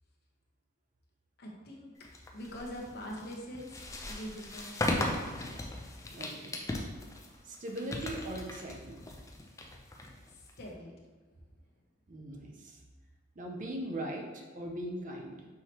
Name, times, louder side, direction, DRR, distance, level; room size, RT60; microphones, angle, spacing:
voice 1, 1.4-2.0 2.3-5.6 6.1-6.4 10.3-10.9, equal, 55° left, -2 dB, 0.8 m, -44 dB
sound 1, 2.0-10.7, left 1 dB, 15° left, 0.4 m, -38 dB
voice 2, 6.1-6.6 7.4-9.0 12.1-12.8 13.4-15.5, right 1 dB, 40° right, 1 dB, 0.6 m, -40 dB
5.6 x 3.1 x 2.9 m, 1.4 s
head